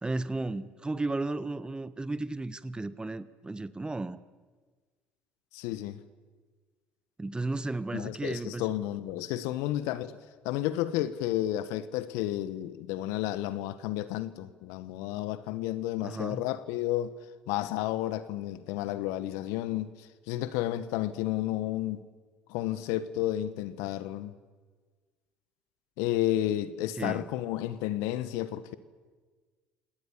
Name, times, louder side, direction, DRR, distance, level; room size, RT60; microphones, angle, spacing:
voice 1, 0.0-4.2 7.2-8.7 16.0-16.4 27.0-27.2, right 2 dB, 15° right, 1.2 m, -34 dB
voice 2, 5.5-6.0 7.9-10.1 10.4-17.1 17.5-22.0 22.5-24.3 26.0-28.8, left 13 dB, 75° left, 1.1 m, -31 dB
28.0 x 19.0 x 7.2 m
hypercardioid pair, 65°, 5 cm